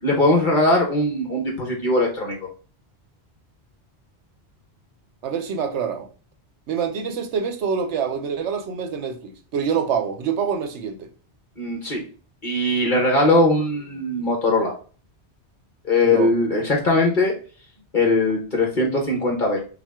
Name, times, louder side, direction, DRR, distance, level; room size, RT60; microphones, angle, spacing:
voice 1, 0.0-2.5 11.6-12.0 12.4-14.7 15.9-17.3 17.9-19.6, left 2 dB, 45° left, 1.1 m, -20 dB
voice 2, 5.2-6.1 6.7-11.1 16.0-16.3, right 6 dB, 85° right, 1.1 m, -26 dB
6.0 x 2.1 x 3.5 m
omnidirectional pair, 1.1 m